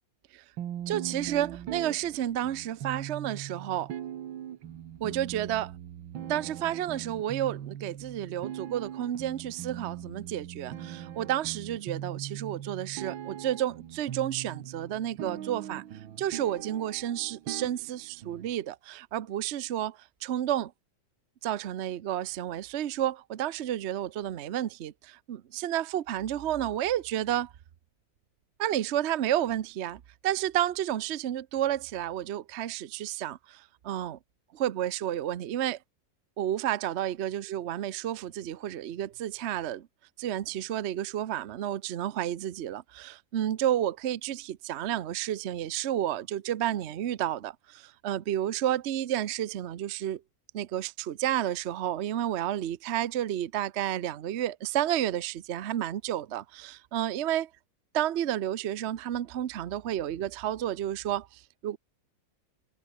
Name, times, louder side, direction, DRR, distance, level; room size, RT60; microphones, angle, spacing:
sound 1, 0.6-18.5, right 10 dB, 90° right, 2.0 m, -40 dB
voice 1, 0.9-3.9 5.0-5.7 6.3-15.8 16.2-20.7 21.4-27.5 28.6-34.2 34.5-35.8 36.4-39.9 40.2-50.2 50.5-57.5 57.9-61.8, right 11 dB, 60° right, 0.7 m, -31 dB
omnidirectional pair, 2.1 m